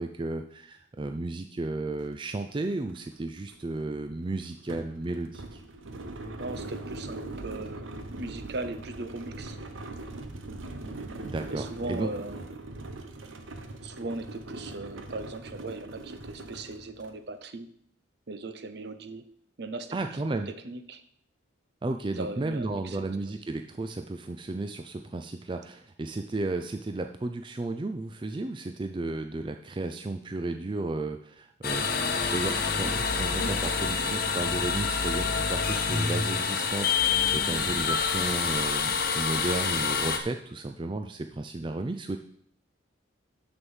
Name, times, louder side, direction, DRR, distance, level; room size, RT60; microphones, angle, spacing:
voice 1, 0.0-5.6 11.2-12.1 19.9-20.5 21.8-31.9 32.2-42.2, right 2 dB, 25° right, 6 dB, 0.4 m, -33 dB
sound 1, 2.0-2.1 2.4-17.2, right 2 dB, 85° right, 1.0 m, -41 dB
voice 2, 6.3-9.6 11.5-12.4 13.8-17.7 18.3-19.2 19.6-20.0 20.6-21.0 22.1-23.4, right 2 dB, 55° right, 11 dB, 0.7 m, -38 dB
sound 2, 31.6-40.2, left 5 dB, 50° left, 0.9 m, -27 dB
6.6 x 6.1 x 7.2 m, 0.66 s
head